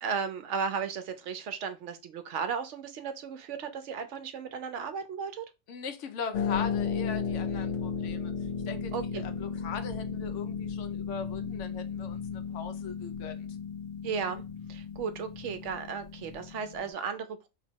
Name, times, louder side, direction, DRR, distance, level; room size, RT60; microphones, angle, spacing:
voice 1, 0.0-5.4 8.9-9.2 14.0-14.4 14.7-17.5, right 6 dB, 70° right, 0.9 m, -35 dB
voice 2, 5.7-8.3 8.7-13.5, left 6 dB, 70° left, 1.0 m, -39 dB
Harp, 6.3-16.9, left 6 dB, 90° left, 0.3 m, -35 dB
3.0 x 2.8 x 4.4 m
omnidirectional pair, 1.3 m